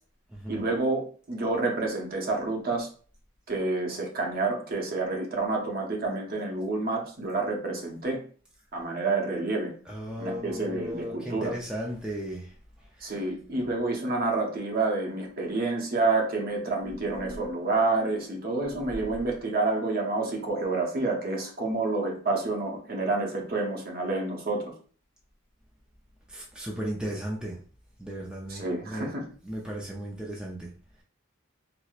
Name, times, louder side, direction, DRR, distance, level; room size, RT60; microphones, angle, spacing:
voice 1, 0.5-2.9 3.5-8.2 8.7-9.7 10.2-11.6 13.0-24.7 28.5-29.2, right 3 dB, 45° right, 1 dB, 0.7 m, -29 dB
voice 2, 9.9-12.5 13.0-13.1 26.3-27.6 28.0-29.1 29.4-30.7, equal, 5° right, -3 dB, 0.4 m, -35 dB
sound 1, 16.8-17.5 18.6-19.4, right 2 dB, 70° left, 0.8 m, -41 dB
4.4 x 2.0 x 2.3 m, 0.43 s
head